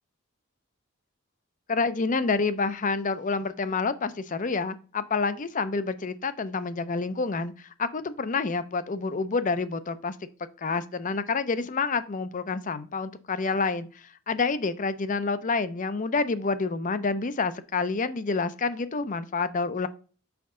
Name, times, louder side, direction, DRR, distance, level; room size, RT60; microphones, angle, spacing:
voice 1, 1.7-10.2 10.6-19.9, left 4 dB, 40° left, 14 dB, 0.5 m, -28 dB
5.8 x 5.2 x 3.6 m, 0.38 s
head